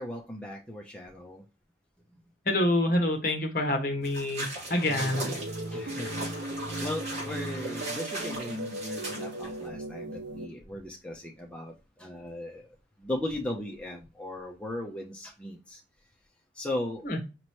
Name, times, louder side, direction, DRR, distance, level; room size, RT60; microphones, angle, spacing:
voice 1, 0.0-1.4 5.7-6.5 6.8-15.8 16.5-17.1, left 1 dB, 5° left, 0.6 m, -37 dB
voice 2, 2.5-5.3 17.1-17.2, left 1 dB, 50° left, 1.1 m, -27 dB
sound 1, 4.0-9.7, right 1 dB, 40° right, 2.3 m, -38 dB
sound 2, 4.9-10.5, right 1 dB, 85° right, 0.6 m, -37 dB
5.3 x 2.9 x 2.9 m
head